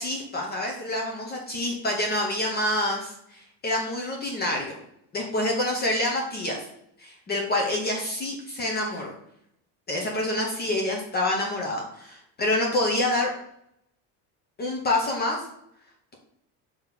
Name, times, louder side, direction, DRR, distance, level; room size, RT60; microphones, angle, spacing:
voice 1, 0.0-4.7 5.1-6.6 7.0-9.1 9.9-13.3 14.6-15.4, left 1 dB, 25° left, 0 dB, 0.9 m, -27 dB
5.9 x 3.1 x 5.8 m, 0.74 s
cardioid pair, 160°, 42 cm